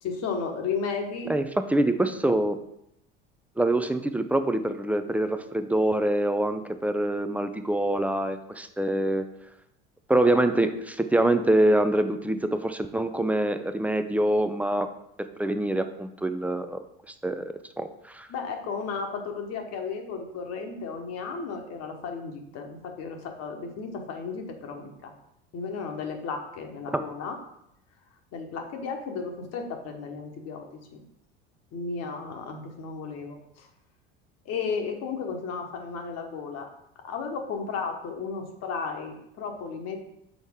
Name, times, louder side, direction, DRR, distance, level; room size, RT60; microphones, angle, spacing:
voice 1, 0.0-1.3 18.3-25.1 25.5-27.4 28.3-30.7 30.9-31.0 31.7-33.7 34.4-36.7 37.0-40.0, left 5 dB, 55° left, 3 dB, 1.1 m, -34 dB
voice 2, 1.3-2.6 3.6-9.3 10.1-14.9 15.4-16.8 17.2-18.3 26.9-27.0, right 1 dB, 5° right, 9 dB, 0.3 m, -25 dB
6.3 x 4.1 x 3.6 m, 0.79 s
hypercardioid pair, 80°, 31 cm